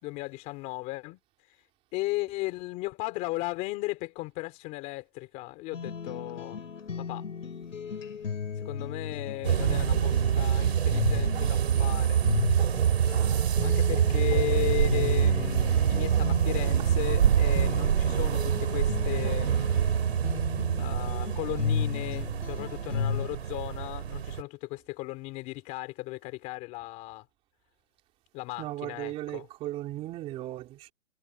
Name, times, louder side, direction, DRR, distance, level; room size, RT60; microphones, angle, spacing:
voice 1, 0.0-1.2 1.9-6.6 7.0-7.2 8.6-12.2 13.6-20.0 20.8-27.2 28.3-29.5, left 21 dB, 20° left, 3.4 m, -36 dB
sound 1, 5.7-23.3, left 6 dB, 85° left, 6.7 m, -35 dB
sound 2, 9.4-24.4, right 9 dB, 55° right, 5.1 m, -26 dB
voice 2, 28.6-30.9, right 15 dB, 15° right, 3.5 m, -37 dB
hypercardioid pair, 165°, 38 cm